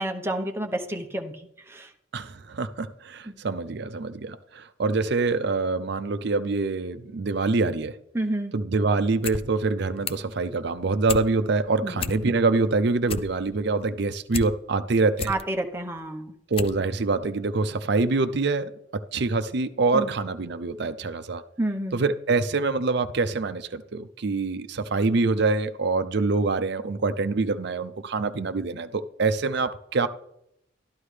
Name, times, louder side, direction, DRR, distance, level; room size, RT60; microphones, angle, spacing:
voice 1, 0.0-1.4 1.7-1.9 3.3-3.4 8.1-8.5 11.8-12.0 15.3-16.3 19.9-20.1 21.6-22.0, right 1 dB, 10° right, 0.9 m, -29 dB
voice 2, 2.1-7.9 8.5-15.3 16.5-21.4 21.9-30.1, right 3 dB, 60° right, 0.6 m, -25 dB
sound 1, 9.0-9.4 9.7-10.3 10.7-11.3 11.6-11.7 11.9-12.5 12.8-14.5 14.9-15.4 16.0-16.1 16.5-16.8 17.1-17.2, left 5 dB, 30° left, 0.4 m, -32 dB
12.0 x 11.5 x 3.3 m
head